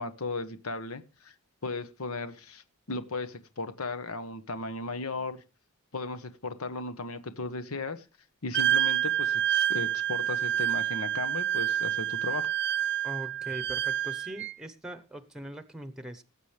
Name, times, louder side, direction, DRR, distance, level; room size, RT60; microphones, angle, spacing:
voice 1, 0.0-1.3 1.6-5.4 5.9-8.0 8.4-12.5, left 3 dB, 80° left, 1.3 m, -36 dB
Wind instrument woodwind instrument, 8.5-14.5, right 11 dB, 55° right, 0.5 m, -28 dB
voice 2, 13.0-16.2, right 1 dB, 5° right, 1.0 m, -41 dB
18.5 x 8.1 x 3.4 m
head